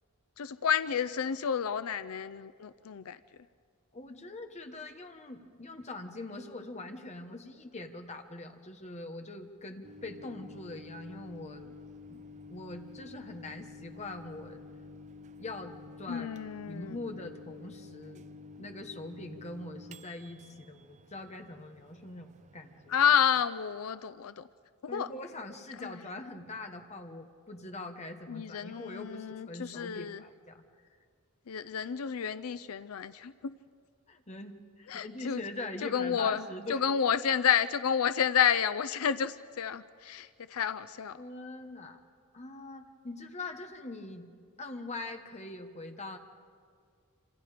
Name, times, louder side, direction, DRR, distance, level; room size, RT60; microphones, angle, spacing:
voice 1, 0.4-3.2 16.1-16.9 22.9-24.4 24.8-25.1 25.8-26.0 28.3-30.2 31.5-33.5 34.9-35.4 35.8-36.4 36.7-41.2, left 8 dB, 85° left, 14 dB, 0.5 m, -30 dB
voice 2, 3.9-11.7 12.1-12.2 12.5-14.6 15.4-16.3 16.7-18.2 18.6-23.0 24.9-30.6 34.1-36.9 41.2-42.0 42.3-44.3 44.6-46.2, left 2 dB, 30° left, 5 dB, 1.4 m, -43 dB
Microwave oven, 9.8-23.3, left 3 dB, 35° right, 0.5 m, -50 dB
28.0 x 26.5 x 5.1 m, 2.1 s
head